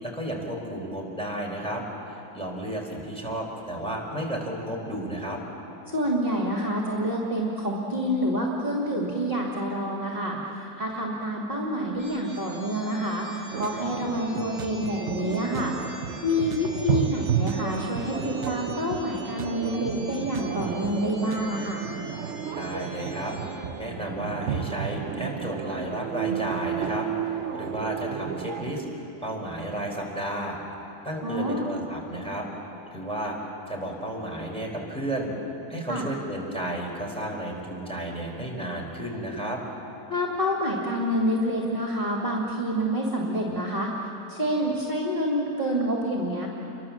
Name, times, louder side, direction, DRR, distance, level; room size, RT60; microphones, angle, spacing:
voice 1, 0.0-5.4 22.6-28.8 29.2-30.6 31.0-32.5 32.9-33.3 33.7-35.3 35.7-39.6, right 1 dB, 5° left, -2 dB, 4.4 m, -32 dB
voice 2, 5.9-15.7 16.2-21.9 31.2-31.7 35.9-36.1 40.1-43.9 44.3-46.5, equal, 30° right, -2 dB, 2.9 m, -27 dB
sound 1, 12.0-23.5, equal, 55° left, 5.8 m, -46 dB
sound 2, 13.5-28.7, right 8 dB, 50° right, 1.0 m, -32 dB
sound 3, 13.6-13.9 14.3-21.6, right 7 dB, 70° right, 1.5 m, -38 dB
29.0 x 23.5 x 7.4 m, 3.0 s
omnidirectional pair, 1.8 m